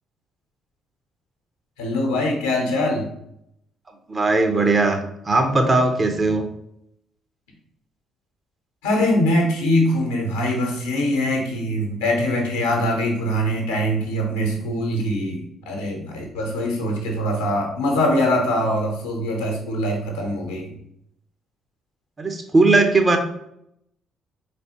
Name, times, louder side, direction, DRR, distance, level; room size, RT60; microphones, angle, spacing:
voice 1, 1.8-3.1 8.8-20.7, left 1 dB, 70° left, 1 dB, 0.9 m, -23 dB
voice 2, 4.1-5.0 5.2-6.4 22.2-23.2, right 3 dB, 30° right, 5 dB, 0.7 m, -18 dB
4.0 x 3.4 x 2.9 m, 0.75 s
figure-of-eight pair, 45°, 0 cm